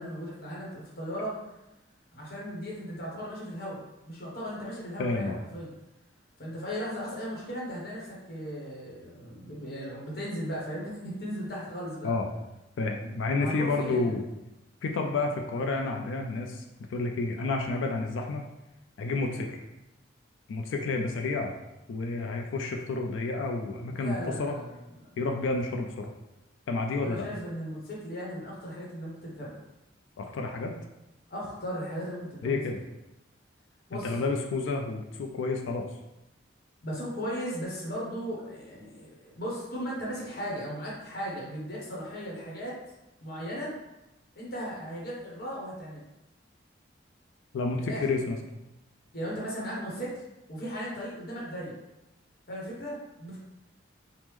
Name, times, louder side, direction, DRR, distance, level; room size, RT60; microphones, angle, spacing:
voice 1, 0.0-1.3 2.1-5.7 6.4-12.1 13.4-14.2 23.9-24.8 27.0-29.6 31.3-32.6 33.9-34.1 36.8-42.7 43.2-43.7 44.3-46.0 47.8-48.0 49.1-50.2 50.5-51.8 52.5-53.4, equal, 50° left, -5 dB, 0.8 m, -37 dB
voice 2, 5.0-5.4 12.0-12.3 12.8-14.2 14.8-16.6 16.9-18.4 19.0-19.6 20.5-21.5 21.9-24.5 25.2-26.1 26.7-27.2 30.2-30.7 32.4-32.8 34.0-35.9 47.5-48.6, left 3 dB, 75° left, 2 dB, 0.3 m, -30 dB
3.5 x 2.0 x 3.0 m, 0.93 s
head